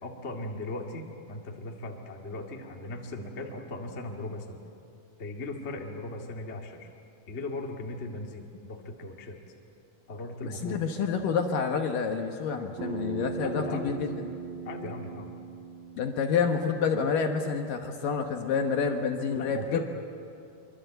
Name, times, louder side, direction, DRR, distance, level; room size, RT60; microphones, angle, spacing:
voice 1, 0.0-4.6 5.2-6.9 7.3-9.4 10.1-10.8 13.4-13.9 14.6-15.3 19.3-19.8, left 2 dB, 40° left, 1 dB, 0.9 m, -38 dB
voice 2, 10.4-14.1 16.0-19.8, left 6 dB, 65° left, 4 dB, 2.3 m, -28 dB
Bass guitar, 12.8-17.1, right 6 dB, 85° right, 1.0 m, -39 dB
25.0 x 24.5 x 8.0 m, 2.6 s
omnidirectional pair, 5.0 m